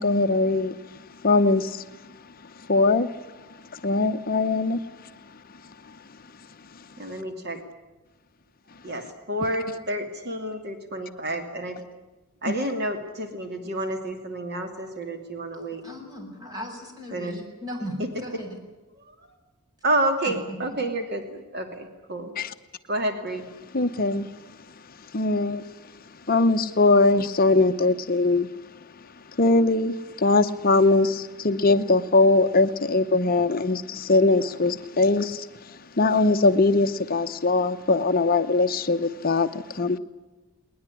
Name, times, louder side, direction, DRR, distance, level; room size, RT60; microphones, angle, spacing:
voice 1, 0.0-2.1 2.4-3.2 3.7-5.1 6.7-6.8 12.5-12.6 22.4-22.5 23.7-25.9 26.3-28.5 29.3-40.0, left 3 dB, 40° left, 0.8 m, -22 dB
voice 2, 7.0-7.6 8.8-11.8 12.4-15.8 17.1-17.3 19.8-22.3 22.9-23.4, right 1 dB, 50° right, 2.7 m, -29 dB
voice 3, 15.8-18.6 20.3-20.8, equal, 20° right, 6.9 m, -37 dB
21.0 x 20.5 x 9.9 m
head